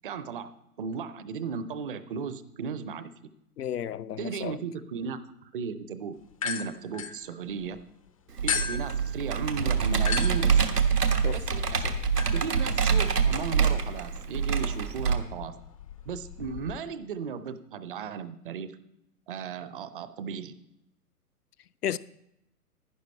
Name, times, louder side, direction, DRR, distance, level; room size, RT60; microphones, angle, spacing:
voice 1, 0.0-0.5 0.8-3.3 4.2-6.1 6.4-7.8 8.4-10.9 11.3-12.0 12.3-15.5 16.1-18.7 19.3-20.5, right 6 dB, 35° right, 0.7 m, -36 dB
voice 2, 3.6-4.6 11.2-11.4 21.8-22.0, left 10 dB, 80° left, 0.6 m, -32 dB
sound 1, 6.3-7.8 8.5-16.8, left 7 dB, 25° left, 0.4 m, -37 dB
Computer keyboard, 8.4-15.1, right 6 dB, 85° right, 1.5 m, -25 dB
11.0 x 10.5 x 4.4 m
figure-of-eight pair, 120°, 46 cm